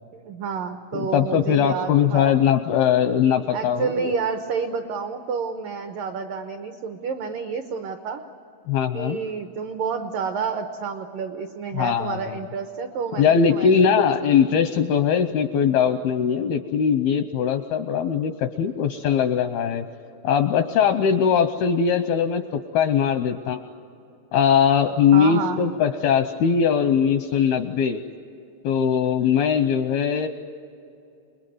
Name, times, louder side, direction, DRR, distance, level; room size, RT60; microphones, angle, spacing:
voice 1, 0.2-2.4 3.5-8.2 8.9-14.0 25.1-25.7, right 5 dB, 80° right, 6 dB, 1.9 m, -29 dB
voice 2, 0.9-4.1 8.7-9.2 11.7-12.4 13.2-19.9 20.2-22.4 22.7-23.6 24.3-28.0 28.6-30.3, left 7 dB, 85° left, 8 dB, 2.2 m, -20 dB
28.5 x 21.0 x 9.3 m, 2.6 s
omnidirectional pair, 5.4 m